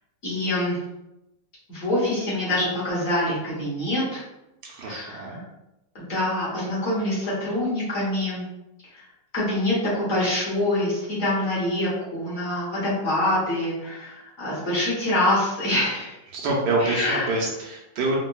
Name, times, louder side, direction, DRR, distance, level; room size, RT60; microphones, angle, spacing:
voice 1, 0.2-0.8 1.7-4.2 4.8-5.4 5.9-8.4 8.9-9.1 9.3-16.2 16.8-17.4, left 1 dB, 50° left, -8 dB, 1.4 m, -25 dB
voice 2, 4.7-5.4 16.3-18.2, right 2 dB, 75° right, -2 dB, 1.3 m, -26 dB
3.8 x 2.1 x 2.2 m, 0.92 s
omnidirectional pair, 2.0 m